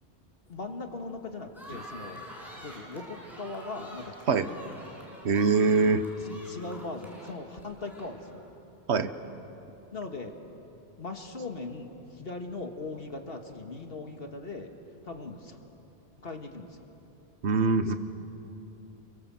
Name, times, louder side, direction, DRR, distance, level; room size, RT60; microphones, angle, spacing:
voice 1, 0.5-2.3 2.6-4.7 6.3-8.4 9.9-10.3 11.0-14.7 15.1-15.6 16.2-16.7 17.9-18.0, left 3 dB, 50° left, 4 dB, 1.9 m, -39 dB
sound 1, 1.5-8.4, equal, ahead, 5.9 m, -47 dB
voice 2, 5.2-6.0 8.9-9.1 17.4-18.0, right 4 dB, 65° right, 10 dB, 1.3 m, -23 dB
29.0 x 23.0 x 7.6 m, 3.0 s
omnidirectional pair, 1.2 m